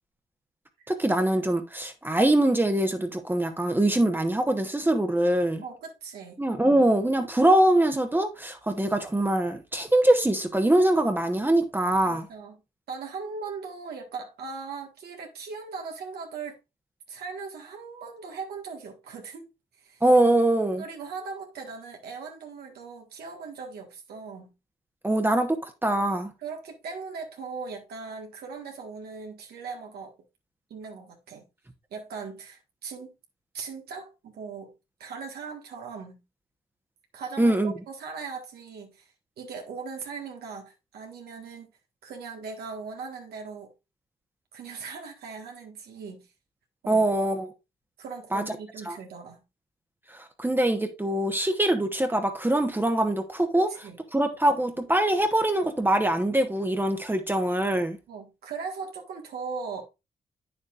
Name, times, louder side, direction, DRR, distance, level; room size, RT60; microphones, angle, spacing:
voice 1, 0.9-5.6 6.4-12.2 20.0-20.8 25.0-26.3 37.4-37.7 46.9-47.5 48.3-48.4 48.8-49.0 50.1-53.7 54.1-58.0, right 1 dB, 15° right, 1.1 m, -23 dB
voice 2, 5.6-6.4 12.0-12.6 12.9-16.6 17.1-19.5 19.8-20.0 20.8-24.5 26.4-30.1 30.7-31.4 31.9-33.1 33.5-34.7 35.0-36.2 37.1-39.1 39.4-41.7 42.0-43.7 44.5-46.3 46.8-47.1 48.0-49.4 53.5-54.0 58.1-59.8, right 5 dB, 80° right, 1.6 m, -39 dB
8.5 x 6.9 x 2.5 m
cardioid pair, 65°, 16 cm